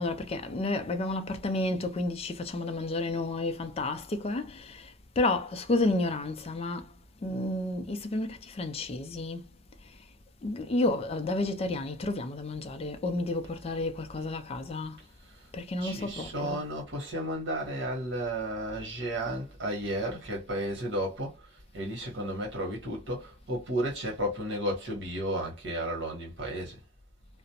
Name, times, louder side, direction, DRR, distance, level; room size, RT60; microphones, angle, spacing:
voice 1, 0.0-7.0 7.2-9.5 9.8-10.0 10.4-15.0 15.5-16.6, left 2 dB, 30° left, 0.4 m, -31 dB
voice 2, 15.8-26.8, right 1 dB, 65° right, 1.2 m, -33 dB
2.4 x 2.0 x 2.8 m
head